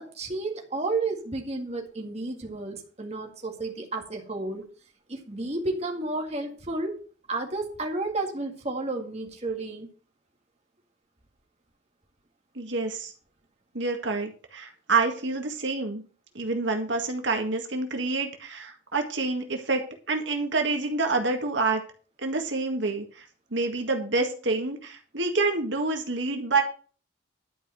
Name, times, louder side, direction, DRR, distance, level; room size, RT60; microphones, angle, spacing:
voice 1, 0.0-4.7 5.1-7.0 7.3-9.9, right 2 dB, 35° right, 2 dB, 2.0 m, -32 dB
voice 2, 12.6-13.1 13.7-16.0 16.3-19.8 20.1-21.8 22.2-23.3 23.5-26.6, right 3 dB, 70° right, 4 dB, 1.9 m, -27 dB
11.5 x 5.2 x 7.7 m, 0.39 s
head